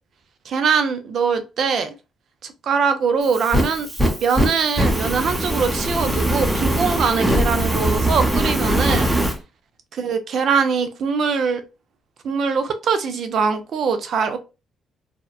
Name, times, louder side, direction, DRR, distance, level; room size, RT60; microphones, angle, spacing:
voice 1, 0.5-1.9 2.4-3.9 4.2-9.1 9.9-11.6 12.2-14.4, right 5 dB, 65° right, 9 dB, 0.5 m, -22 dB
Fire, 3.2-9.3, right 1 dB, 15° right, 0.7 m, -21 dB
2.8 x 2.1 x 2.3 m, 0.28 s
cardioid pair, 90°, 0 cm